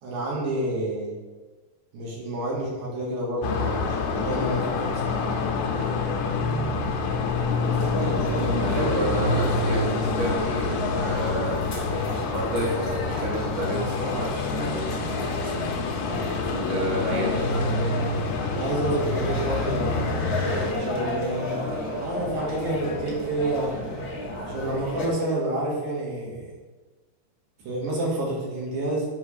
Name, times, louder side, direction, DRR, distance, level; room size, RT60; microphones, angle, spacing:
voice 1, 0.0-1.1 1.9-5.3 18.5-20.0 20.6-21.7 22.0-23.8 24.5-26.5 27.7-29.1, right 1 dB, 85° right, -5 dB, 3.9 m, -29 dB
sound 1, 3.4-20.7, left 4 dB, 75° left, 2.3 m, -27 dB
sound 2, 7.6-25.1, left 1 dB, 40° left, 1.3 m, -31 dB
voice 2, 8.4-11.6 12.3-17.4, equal, 65° right, -3 dB, 2.9 m, -31 dB
9.4 x 3.6 x 6.6 m, 1.3 s
omnidirectional pair, 4.1 m